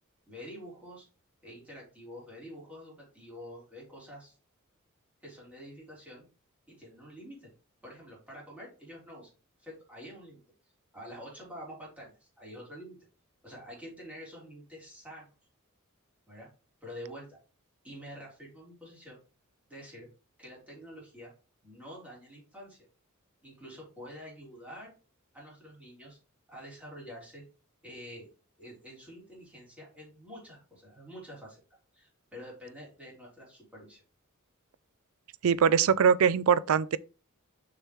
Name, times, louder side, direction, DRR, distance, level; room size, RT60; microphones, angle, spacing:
voice 1, 0.3-1.1 1.4-4.4 5.2-6.2 6.7-7.5 7.8-9.3 9.6-10.4 10.9-13.0 13.4-15.3 16.3-16.5 16.8-17.4 17.8-19.2 19.7-20.1 20.4-21.3 21.6-22.9 23.4-24.9 25.3-26.2 26.5-27.4 27.8-28.3 28.6-31.6 31.9-34.0, equal, 5° right, 3.6 m, -47 dB
voice 2, 35.4-37.0, right 7 dB, 80° right, 0.4 m, -22 dB
6.6 x 5.9 x 3.1 m
head